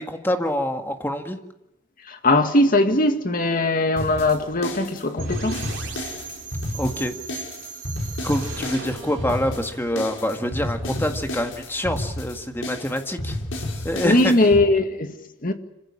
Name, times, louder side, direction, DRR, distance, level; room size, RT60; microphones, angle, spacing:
voice 1, 0.0-1.4 6.7-7.2 8.2-13.4 13.8-14.3, left 1 dB, 10° left, 1.9 m, -26 dB
voice 2, 2.0-5.6 14.0-15.2 15.4-15.5, left 2 dB, 45° left, 2.1 m, -20 dB
sound 1, 4.0-14.7, left 1 dB, 85° left, 5.4 m, -32 dB
sound 2, 5.2-11.0, right 5 dB, 75° right, 3.6 m, -39 dB
26.0 x 16.0 x 9.9 m
head